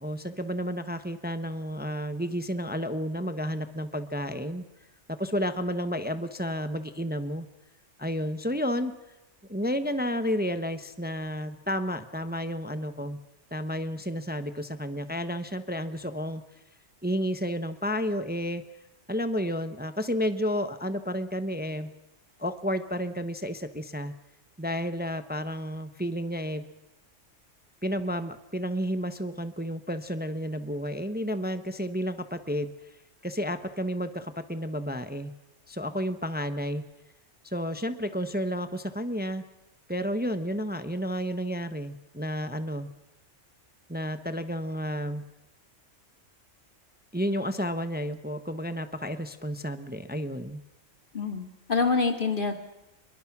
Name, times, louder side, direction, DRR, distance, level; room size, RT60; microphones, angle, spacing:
voice 1, 0.0-4.6 5.1-7.5 8.0-8.9 9.5-13.2 13.5-16.4 17.0-18.6 19.1-21.9 22.4-24.1 24.6-26.6 27.8-32.7 33.2-35.3 35.7-36.8 37.4-39.4 39.9-42.9 43.9-45.2 47.1-50.6, equal, 10° right, 10 dB, 0.9 m, -31 dB
voice 2, 51.1-52.5, left 4 dB, 45° left, 6 dB, 2.4 m, -26 dB
27.5 x 22.5 x 6.0 m, 0.94 s
omnidirectional pair, 1.3 m